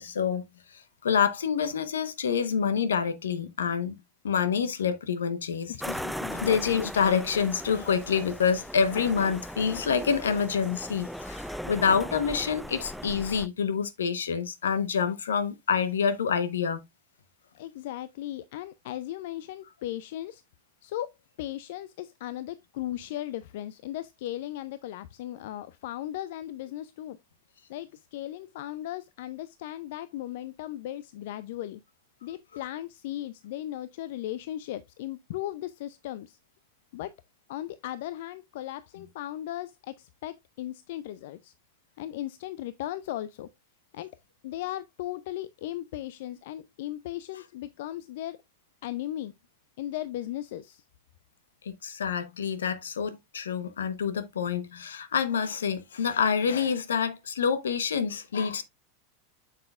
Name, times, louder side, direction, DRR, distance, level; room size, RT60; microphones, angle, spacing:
voice 1, 0.0-5.7 6.4-16.8 51.6-58.6, left 6 dB, 80° left, 1.0 m, -27 dB
voice 2, 5.7-6.6 17.6-20.4 20.8-27.2 27.7-31.8 32.2-36.4 36.9-37.1 37.5-41.5 42.0-43.5 43.9-44.1 44.4-48.4 48.8-49.3 49.8-50.8, left 13 dB, 65° left, 0.4 m, -37 dB
sound 1, 5.8-13.5, equal, ahead, 0.4 m, -38 dB
7.6 x 6.6 x 2.4 m
hypercardioid pair, 95°, 0 cm